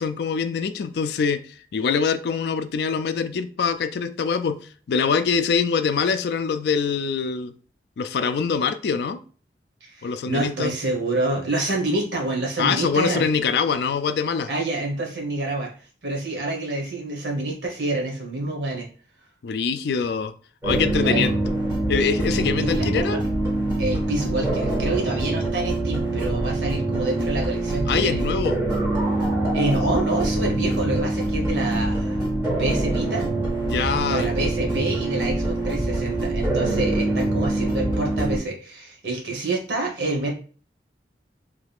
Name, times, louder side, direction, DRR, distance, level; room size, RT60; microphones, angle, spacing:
voice 1, 0.0-1.4 1.7-4.6 4.9-7.5 8.0-9.2 10.0-10.7 12.6-14.5 19.4-20.3 20.6-21.3 21.9-23.2 27.9-28.6 33.6-34.3, left 5 dB, 65° left, 11 dB, 0.3 m, -24 dB
voice 2, 9.8-13.2 14.5-18.9 21.0-21.3 22.3-23.2 23.8-28.2 29.5-32.2 32.6-33.3 34.1-40.3, right 2 dB, 80° right, 0 dB, 1.2 m, -27 dB
sound 1, 20.6-38.4, right 2 dB, 15° right, 1.4 m, -24 dB
3.3 x 2.4 x 3.4 m, 0.40 s
head